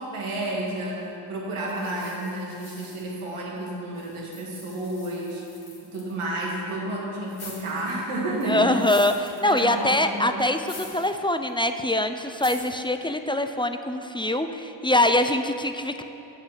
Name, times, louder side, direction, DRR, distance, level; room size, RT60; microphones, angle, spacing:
voice 1, 0.0-5.4 5.8-8.8 9.4-10.5, right 1 dB, 85° right, -3 dB, 2.1 m, -31 dB
sound 1, 1.7-3.6 3.9-6.1 7.3-7.9 8.4-9.8 10.5-11.2 11.5-11.6 12.3-12.8, left 3 dB, 75° left, 2.2 m, -45 dB
voice 2, 8.4-16.0, left 1 dB, 10° left, 7 dB, 0.5 m, -24 dB
8.0 x 6.6 x 7.4 m, 2.8 s
cardioid pair, 50°, 49 cm